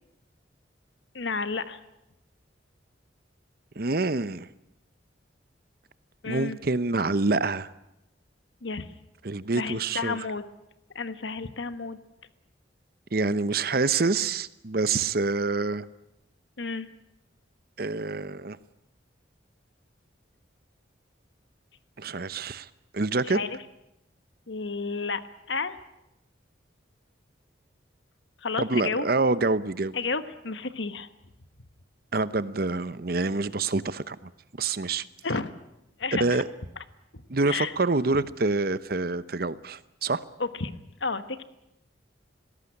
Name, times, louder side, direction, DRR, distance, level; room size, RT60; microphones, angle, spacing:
voice 1, 1.1-1.8 6.2-6.6 8.6-8.9 9.5-10.4 10.9-12.0 16.6-16.9 23.2-23.6 24.5-25.2 25.5-25.8 28.4-29.1 29.9-31.1 35.2-35.5 36.0-36.4 37.1-37.7 40.4-41.4, left 4 dB, 75° left, 12 dB, 1.3 m, -31 dB
voice 2, 3.8-4.5 6.3-7.7 9.2-10.2 13.1-15.8 17.8-18.6 22.0-22.7 22.9-23.4 28.6-29.9 32.1-34.3 34.6-35.0 36.2-36.4 37.3-40.2, right 3 dB, 55° right, 15 dB, 0.8 m, -26 dB
20.0 x 17.5 x 9.9 m, 0.88 s
head